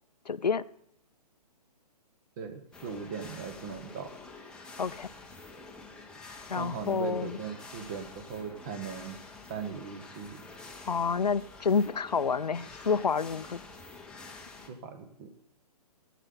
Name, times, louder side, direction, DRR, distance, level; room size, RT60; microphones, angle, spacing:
voice 1, 0.3-0.6 4.8-5.1 6.5-7.4 10.9-13.6, left 5 dB, 85° left, 0.4 m, -29 dB
voice 2, 2.4-4.1 6.5-9.2 9.5-10.4 14.7-15.3, right 6 dB, 30° right, 1.1 m, -39 dB
sound 1, 2.7-14.7, left 3 dB, 5° left, 0.7 m, -48 dB
13.5 x 9.2 x 3.8 m
figure-of-eight pair, 130°, 20 cm